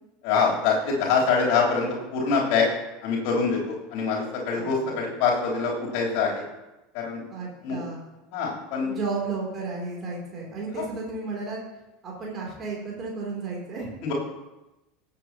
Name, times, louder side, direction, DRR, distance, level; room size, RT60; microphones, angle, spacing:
voice 1, 0.2-2.7 3.0-6.4 6.9-7.2 7.6-7.8 8.3-8.9 10.7-10.8 14.0-14.1, left 5 dB, 50° left, -4 dB, 3.6 m, -24 dB
voice 2, 4.6-5.0 7.3-8.0 8.8-11.6 12.0-13.9, right 4 dB, 30° right, -3 dB, 3.3 m, -33 dB
18.5 x 7.6 x 3.0 m, 0.98 s
figure-of-eight pair, 75°, 0 cm